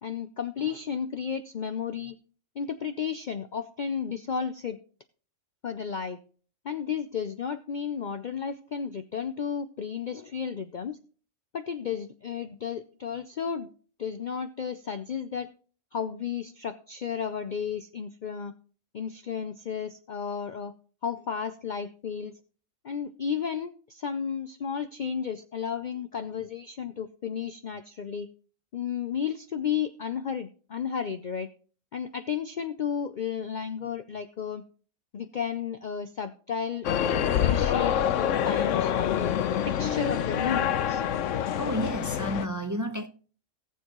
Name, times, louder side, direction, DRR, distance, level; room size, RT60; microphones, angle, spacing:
voice 1, 0.0-2.1 2.6-4.8 5.6-6.2 6.6-11.0 11.5-13.7 14.0-15.5 15.9-18.5 18.9-20.7 21.0-22.3 22.8-28.3 28.7-31.5 31.9-34.6 35.1-39.3 39.7-41.0, left 7 dB, 50° left, 0.6 m, -33 dB
sound 1, 36.8-42.5, left 9 dB, 70° left, 1.0 m, -26 dB
voice 2, 41.6-43.1, equal, 15° right, 0.7 m, -31 dB
18.0 x 7.2 x 3.0 m
omnidirectional pair, 1.4 m